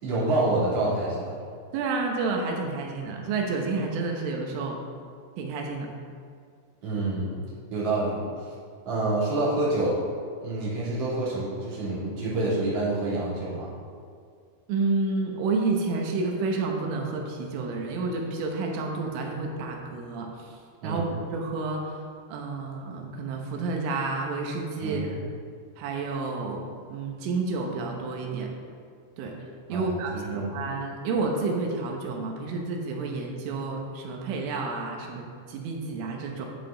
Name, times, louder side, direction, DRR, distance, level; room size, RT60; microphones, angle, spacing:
voice 1, 0.0-1.4 6.8-8.2 8.8-10.0 10.4-13.7 20.8-21.0 24.8-25.1 29.7-30.6, right 2 dB, 40° right, -9 dB, 2.8 m, -27 dB
voice 2, 1.7-4.8 5.4-5.9 14.7-20.6 20.8-21.0 21.3-22.0 22.3-25.2 25.8-28.5 29.2-29.4 29.7-36.5, right 3 dB, 75° right, 1 dB, 3.3 m, -30 dB
10.5 x 7.3 x 3.8 m, 2.2 s
omnidirectional pair, 6.0 m